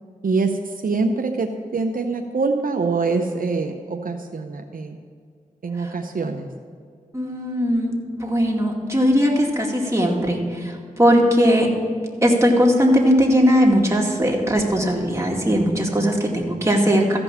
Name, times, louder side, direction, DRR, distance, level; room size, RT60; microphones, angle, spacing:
voice 1, 0.2-0.6 0.8-5.0 5.6-6.5, right 4 dB, 75° right, 4 dB, 0.7 m, -24 dB
voice 2, 7.1-7.9 8.2-11.7 12.2-17.2, equal, 20° right, -1 dB, 2.2 m, -19 dB
14.0 x 5.3 x 7.1 m, 2.1 s
cardioid pair, 45°, 15 cm